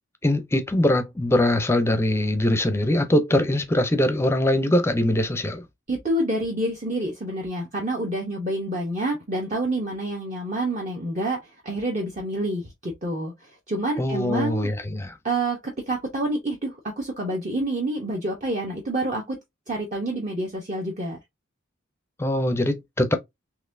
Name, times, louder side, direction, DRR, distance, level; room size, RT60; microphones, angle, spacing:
voice 1, 0.2-5.6 14.0-15.2 22.2-23.2, left 1 dB, 15° left, 0.5 m, -22 dB
voice 2, 5.9-14.7 15.2-19.4 19.7-21.2, right 1 dB, 40° right, 0.9 m, -28 dB
4.0 x 2.9 x 2.6 m
head